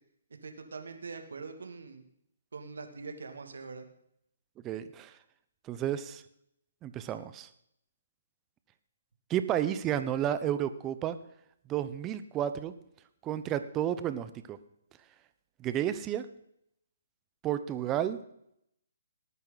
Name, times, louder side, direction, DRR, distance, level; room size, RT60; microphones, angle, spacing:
voice 1, 0.4-2.0 2.5-3.9, right 4 dB, 80° right, 5 dB, 2.3 m, -43 dB
voice 2, 4.6-5.1 5.7-6.2 6.8-7.5 9.3-11.2 11.7-12.7 13.2-14.6 15.6-16.3 17.4-18.2, right 10 dB, 20° right, 12 dB, 0.8 m, -31 dB
18.5 x 9.4 x 4.1 m, 0.74 s
hypercardioid pair, 150°, 0 cm